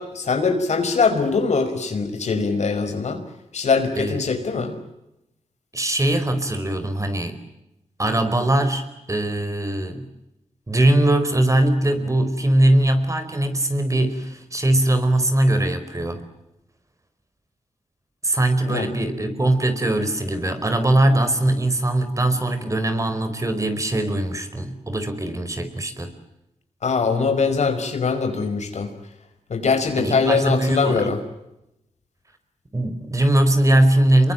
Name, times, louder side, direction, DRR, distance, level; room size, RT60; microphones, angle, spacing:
voice 1, 0.0-3.2 3.5-4.7 18.7-18.9 26.8-28.9 29.5-31.2, left 5 dB, 70° left, 7 dB, 5.1 m, -22 dB
voice 2, 5.7-7.4 8.0-8.8 9.1-10.1 10.7-16.2 18.2-26.1 30.0-31.1 32.7-34.3, right 1 dB, 25° right, 9 dB, 4.8 m, -21 dB
28.0 x 23.0 x 9.0 m, 0.87 s
wide cardioid pair, 90°, 12 cm